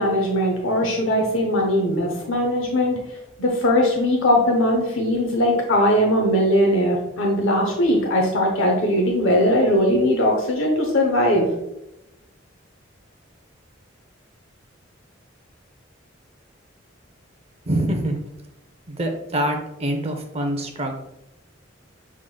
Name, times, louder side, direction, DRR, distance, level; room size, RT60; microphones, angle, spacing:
voice 1, 0.0-3.0 3.4-11.5, left 1 dB, 80° left, 1 dB, 0.8 m, -20 dB
voice 2, 17.7-18.2 18.9-20.9, right 1 dB, 30° right, 4 dB, 0.5 m, -25 dB
6.3 x 3.6 x 2.2 m, 0.87 s
head